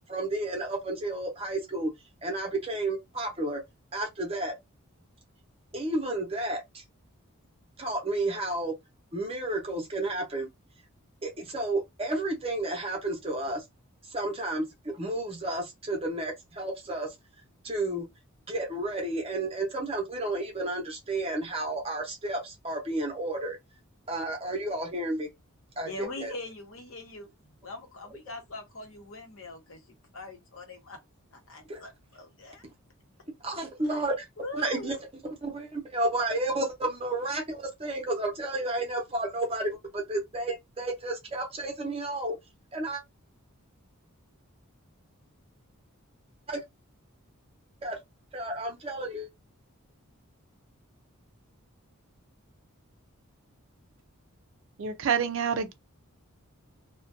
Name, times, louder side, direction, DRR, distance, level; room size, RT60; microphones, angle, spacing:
voice 1, 0.1-1.9 2.2-3.6 3.9-4.5 5.7-6.8 7.8-8.7 9.1-10.5 11.2-13.6 14.0-17.1 17.6-18.1 18.5-23.6 24.1-25.3 25.8-26.3 31.7-31.8 33.4-34.2 34.5-34.9 35.4-42.4 42.7-43.0 46.5-46.6 47.8-48.0 48.3-49.3, right 2 dB, 25° right, 0.7 m, -31 dB
voice 2, 25.8-27.3 27.6-31.0 31.3-32.6 33.8-34.0 34.4-35.0, left 2 dB, 65° left, 0.8 m, -42 dB
voice 3, 54.8-55.7, right 7 dB, 60° right, 0.4 m, -27 dB
2.4 x 2.2 x 2.5 m
head